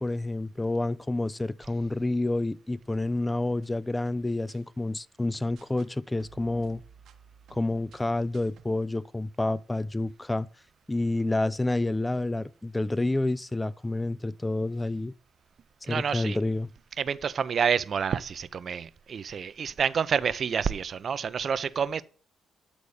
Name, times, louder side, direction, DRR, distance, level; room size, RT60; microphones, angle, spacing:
voice 1, 0.0-6.8 7.5-10.5 10.9-15.1 15.9-16.7, left 2 dB, 15° left, 0.3 m, -29 dB
sound 1, 2.9-4.6 5.3-5.9 6.2-8.8, right 7 dB, 70° right, 1.0 m, -56 dB
voice 2, 15.9-16.4 17.0-22.0, right 7 dB, 50° right, 0.5 m, -28 dB
8.5 x 4.0 x 4.8 m
cardioid pair, 90°, 0 cm